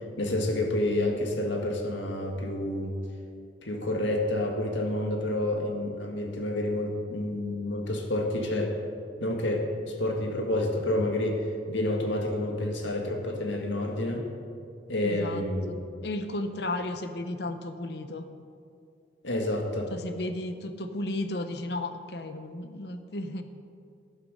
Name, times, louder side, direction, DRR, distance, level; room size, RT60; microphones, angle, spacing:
voice 1, 0.2-3.0 3.6-8.8 9.2-14.3 14.9-15.8 19.2-19.9, left 1 dB, 80° left, 2 dB, 1.7 m, -29 dB
voice 2, 15.0-18.2 19.9-23.4, left 2 dB, 60° left, 9 dB, 0.8 m, -34 dB
12.0 x 11.0 x 6.4 m, 2.4 s
head